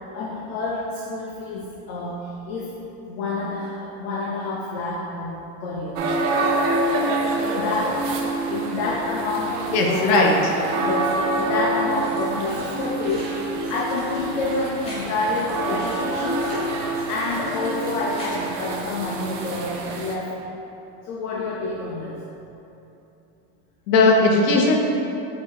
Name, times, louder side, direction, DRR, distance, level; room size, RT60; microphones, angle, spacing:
voice 1, 0.1-2.8 3.0-6.1 7.4-8.1 8.5-10.4 10.8-16.5 17.1-20.3 21.0-22.2, left 2 dB, 55° left, -3 dB, 0.6 m, -28 dB
sound 1, 6.0-20.2, right 2 dB, 55° right, 0.5 m, -27 dB
voice 2, 9.7-10.4 23.9-24.8, left 2 dB, 85° left, 0 dB, 0.9 m, -17 dB
sound 2, 11.9-18.5, equal, 15° left, 0.7 m, -44 dB
4.6 x 2.8 x 3.6 m, 2.9 s
cardioid pair, 170°, 47 cm